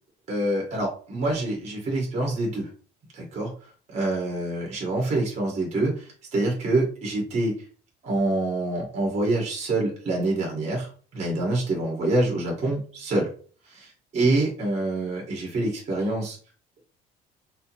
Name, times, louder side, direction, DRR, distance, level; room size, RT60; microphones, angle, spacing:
voice 1, 0.3-2.7 3.1-3.5 3.9-7.5 8.0-13.3 13.7-16.4, right 2 dB, 40° right, -1 dB, 1.9 m, -26 dB
5.4 x 2.1 x 4.5 m, 0.41 s
cardioid pair, 160°, 18 cm